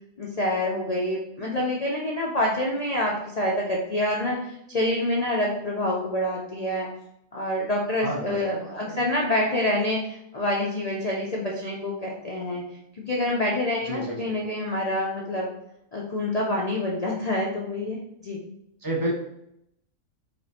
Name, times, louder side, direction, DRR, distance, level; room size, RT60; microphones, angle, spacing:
voice 1, 0.2-6.9 7.3-12.6 12.9-15.5 15.9-18.0 18.2-18.4, left 1 dB, 65° left, -3 dB, 0.3 m, -27 dB
voice 2, 8.0-9.0 13.9-14.4 18.8-19.1, right 1 dB, 20° right, -2 dB, 0.6 m, -31 dB
4.5 x 2.5 x 4.1 m, 0.78 s
omnidirectional pair, 1.5 m